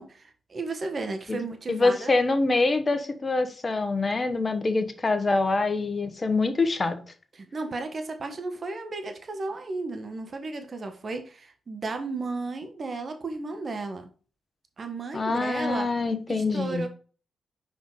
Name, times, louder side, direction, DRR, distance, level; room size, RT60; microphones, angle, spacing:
voice 1, 0.0-2.1 7.3-14.1 14.8-15.9 16.3-16.9, right 3 dB, 50° right, 1.3 m, -34 dB
voice 2, 1.7-7.0 15.1-16.8, left 3 dB, 35° left, 1.2 m, -25 dB
5.2 x 5.0 x 3.7 m
hypercardioid pair, 45°, 0 cm